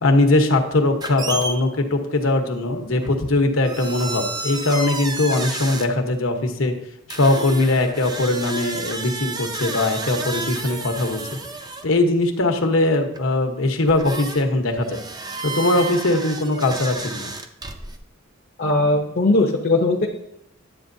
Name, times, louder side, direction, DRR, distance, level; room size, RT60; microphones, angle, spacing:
voice 1, 0.0-6.7 7.1-11.2 11.8-15.0 15.4-17.3, left 2 dB, 80° left, 4 dB, 1.1 m, -20 dB
sound 1, 1.0-1.6 3.0-3.3 3.6-5.9 7.1-12.0 13.2-13.3 13.9-14.5 14.8-18.0, right 2 dB, 20° right, 0.5 m, -31 dB
voice 2, 18.6-20.1, left 2 dB, 50° left, 1 dB, 0.7 m, -19 dB
11.0 x 8.1 x 2.7 m, 0.79 s
head